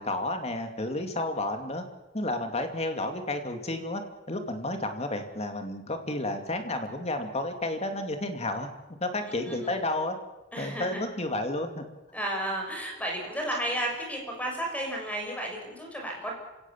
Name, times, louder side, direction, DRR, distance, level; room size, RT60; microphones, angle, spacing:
voice 1, 0.0-1.8 2.1-4.0 4.3-8.7 9.0-10.2 10.6-11.9, left 2 dB, 35° left, 6 dB, 2.5 m, -31 dB
voice 2, 9.1-9.8 10.5-11.0 12.1-16.3, right 1 dB, 5° left, 0 dB, 6.3 m, -33 dB
27.0 x 17.5 x 7.3 m, 1.0 s
head